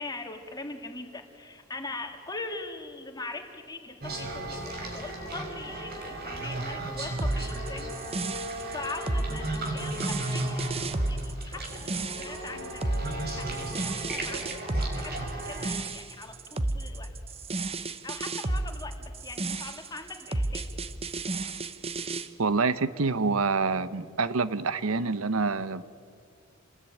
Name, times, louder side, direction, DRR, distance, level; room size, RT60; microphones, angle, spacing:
voice 1, 0.0-10.6 11.0-17.1 18.0-20.7, left 3 dB, 20° left, 4 dB, 2.6 m, -41 dB
sound 1, 4.0-15.7, right 1 dB, 50° right, 5.1 m, -35 dB
sound 2, 7.2-22.3, right 2 dB, 30° right, 0.9 m, -32 dB
voice 2, 22.4-25.8, right 4 dB, 80° right, 15 dB, 0.8 m, -26 dB
28.0 x 20.5 x 9.3 m, 2.2 s
head